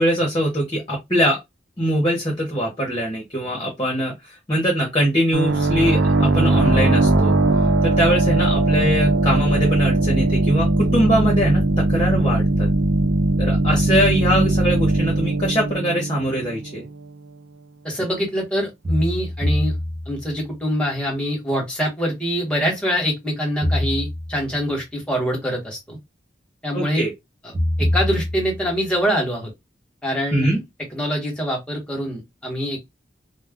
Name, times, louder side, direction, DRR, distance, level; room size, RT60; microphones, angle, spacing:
voice 1, 0.0-1.4 1.8-7.3 7.8-12.7 13.4-16.9 26.7-27.1 30.3-30.6, equal, 25° left, 0.8 m, -22 dB
sound 1, 5.3-16.8, right 2 dB, 85° right, 0.6 m, -19 dB
sound 2, 16.2-16.3 18.8-20.5 23.6-24.7 27.5-28.9, left 1 dB, 35° right, 0.6 m, -24 dB
voice 2, 17.8-19.7 20.1-26.0 26.6-27.0 27.4-27.5 27.8-29.5 30.0-30.6 30.9-32.8, equal, 5° left, 1.1 m, -24 dB
2.3 x 2.1 x 3.5 m
head